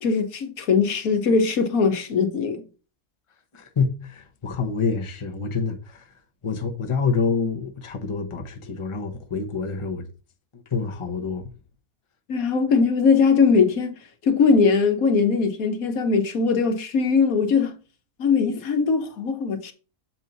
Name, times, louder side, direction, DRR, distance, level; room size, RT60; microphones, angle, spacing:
voice 1, 0.0-2.6 12.3-13.9 14.2-17.7 18.2-19.7, left 5 dB, 85° left, 1.6 m, -20 dB
voice 2, 3.5-6.1 6.4-10.1 10.5-11.5, left 5 dB, 25° left, 0.9 m, -27 dB
7.4 x 4.6 x 4.0 m
omnidirectional pair, 1.4 m